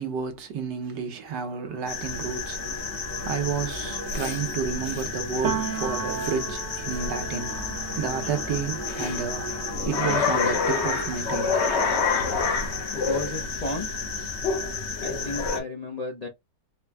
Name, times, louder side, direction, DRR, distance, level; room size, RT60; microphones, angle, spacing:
voice 1, 0.0-2.9 3.2-11.6, right 6 dB, 75° right, 1.5 m, -31 dB
sound 1, 1.2-14.3, right 2 dB, 30° right, 0.6 m, -41 dB
sound 2, 1.9-15.6, left 5 dB, 55° left, 0.8 m, -29 dB
Piano, 5.4-13.1 13.4-15.0, right 6 dB, 55° right, 0.9 m, -37 dB
voice 2, 12.9-13.9 15.0-16.3, left 2 dB, 75° left, 0.3 m, -33 dB
4.3 x 2.1 x 3.4 m
omnidirectional pair, 1.9 m